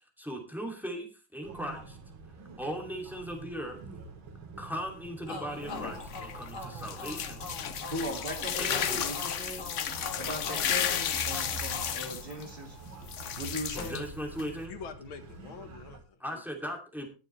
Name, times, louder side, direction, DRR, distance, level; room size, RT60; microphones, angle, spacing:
voice 1, 0.2-1.1 1.3-2.0 2.6-3.8 4.6-7.8 8.6-9.1 13.7-14.7 16.2-17.1, equal, ahead, 2 dB, 2.4 m, -38 dB
sound 1, 1.4-16.0, right 4 dB, 85° right, 2.4 m, -47 dB
sound 2, 5.3-12.9, left 3 dB, 40° left, 2.2 m, -44 dB
sound 3, 5.5-14.6, left 9 dB, 65° left, 0.7 m, -34 dB
voice 2, 7.9-9.7 10.2-12.8 13.4-14.1, equal, 30° right, 2 dB, 2.5 m, -38 dB
voice 3, 14.7-16.7, left 6 dB, 85° left, 8 dB, 2.2 m, -46 dB
19.5 x 6.8 x 3.2 m, 0.32 s
omnidirectional pair, 2.2 m